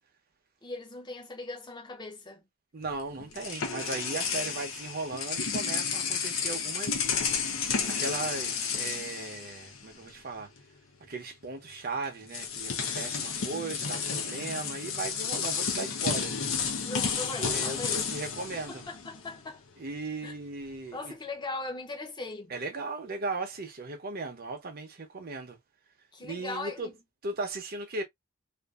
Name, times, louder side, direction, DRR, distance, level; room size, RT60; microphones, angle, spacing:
voice 1, 0.6-2.4 16.8-18.0 18.5-19.6 20.2-20.3 20.9-22.5 26.1-26.9, left 3 dB, 20° left, 0.8 m, -39 dB
voice 2, 2.7-7.1 7.9-10.5 11.1-16.3 17.4-18.8 19.8-21.1 22.5-25.6 26.2-26.9 27.2-28.0, right 3 dB, 45° right, 0.7 m, -37 dB
sound 1, 2.8-10.1 10.4-10.6 11.7-11.8 12.3-19.4, left 6 dB, 65° left, 0.6 m, -32 dB
2.6 x 2.5 x 2.3 m
head